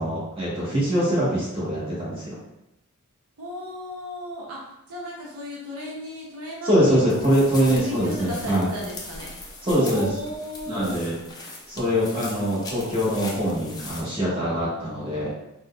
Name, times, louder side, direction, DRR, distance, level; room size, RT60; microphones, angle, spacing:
voice 1, 0.0-2.4 6.6-8.7 9.6-10.1 10.7-11.1 11.7-15.3, equal, 25° right, -8 dB, 1.0 m, -23 dB
voice 2, 3.4-4.6 4.9-7.3 7.7-9.3 9.7-11.1, left 1 dB, 75° right, -3 dB, 0.6 m, -34 dB
sound 1, 7.1-14.0, left 2 dB, 15° left, 0.3 m, -40 dB
3.8 x 2.1 x 2.3 m, 0.88 s
head